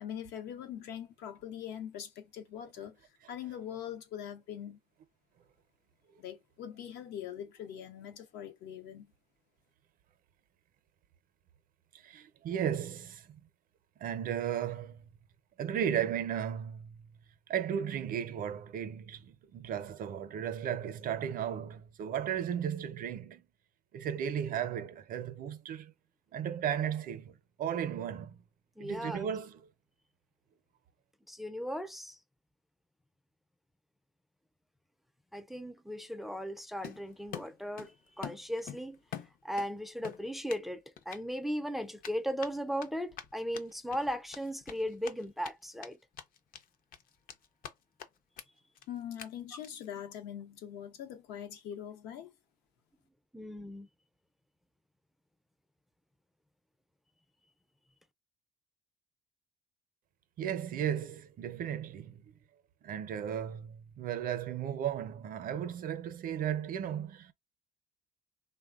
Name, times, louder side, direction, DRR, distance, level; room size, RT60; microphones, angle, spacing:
voice 1, 0.0-3.0 3.3-4.8 6.2-9.1 48.9-52.3, left 9 dB, 85° left, 0.8 m, -42 dB
voice 2, 12.0-13.3 14.0-15.1 15.6-17.1 17.5-23.4 23.9-25.9 26.3-28.4 28.8-29.5 60.4-62.2 62.8-67.3, right 9 dB, 55° right, 0.5 m, -35 dB
voice 3, 28.8-29.3 31.3-32.2 35.3-39.0 39.4-46.0 53.3-53.9, equal, ahead, 0.4 m, -37 dB
Run, 36.8-37.9 38.2-39.7 40.0-40.7 41.0-41.2 42.0-45.5 45.8-45.9 46.2-46.6 46.9-47.7 48.0-48.1 48.4-48.5 48.8-48.9 49.2-49.3 49.6-49.9, left 9 dB, 60° left, 0.6 m, -45 dB
3.2 x 2.1 x 2.3 m
cardioid pair, 110°, 17 cm